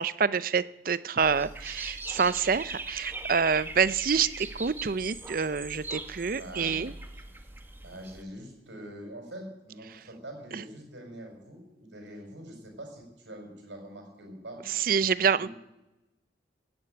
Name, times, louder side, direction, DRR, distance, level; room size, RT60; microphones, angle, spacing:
voice 1, 0.0-6.9 10.5-10.6 14.7-15.5, right 6 dB, 50° right, 17 dB, 0.5 m, -27 dB
Dog / Bird, 1.2-8.2, right 2 dB, 10° right, 0.9 m, -40 dB
voice 2, 6.3-6.8 7.8-14.6 15.3-15.5, right 1 dB, 80° right, 3 dB, 5.1 m, -44 dB
16.0 x 8.1 x 8.8 m, 1.0 s
head